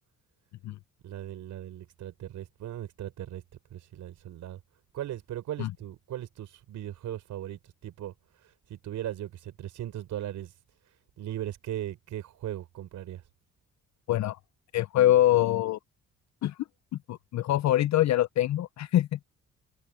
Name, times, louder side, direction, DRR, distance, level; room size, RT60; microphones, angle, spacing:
voice 1, 1.0-3.4 3.7-4.6 4.9-10.6 10.8-13.2, right 12 dB, 75° right, 4.0 m, -38 dB
voice 2, 14.1-14.4 14.7-15.8 16.4-16.6 17.1-19.2, left 13 dB, 65° left, 0.7 m, -24 dB
cardioid pair, 90°, 30 cm